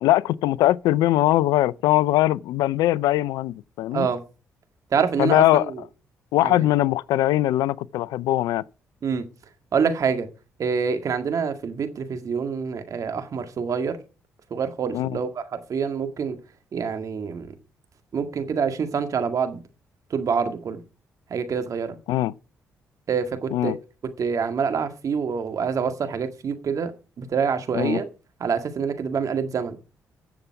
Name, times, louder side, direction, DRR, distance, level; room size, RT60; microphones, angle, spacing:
voice 1, 0.0-4.1 5.2-5.7 6.3-8.6 14.9-15.2 22.1-22.3 23.5-23.8 27.7-28.0, left 15 dB, 75° left, 0.5 m, -21 dB
voice 2, 4.9-5.8 6.4-6.6 9.0-9.3 9.7-10.3 10.6-14.0 14.5-16.4 16.7-17.5 18.1-19.6 20.1-20.8 21.3-22.0 23.1-23.7 24.2-26.9 27.2-28.0 28.4-29.8, right 6 dB, 55° right, 2.0 m, -26 dB
14.5 x 7.1 x 4.8 m
hypercardioid pair, 45°, 7 cm